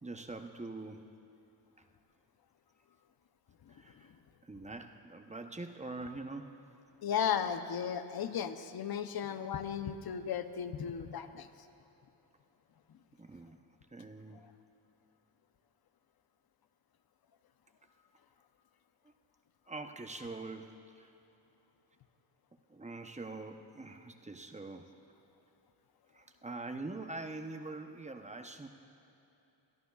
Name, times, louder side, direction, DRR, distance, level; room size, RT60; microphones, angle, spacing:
voice 1, 0.0-1.1 3.7-4.1 4.4-6.6 13.2-13.6 13.9-14.5 19.7-21.1 22.7-24.9 26.1-28.7, right 3 dB, 15° right, 6 dB, 0.8 m, -44 dB
voice 2, 7.0-11.5, left 8 dB, 55° left, 10 dB, 0.7 m, -35 dB
21.0 x 13.0 x 2.4 m, 2.9 s
cardioid pair, 70°, 43 cm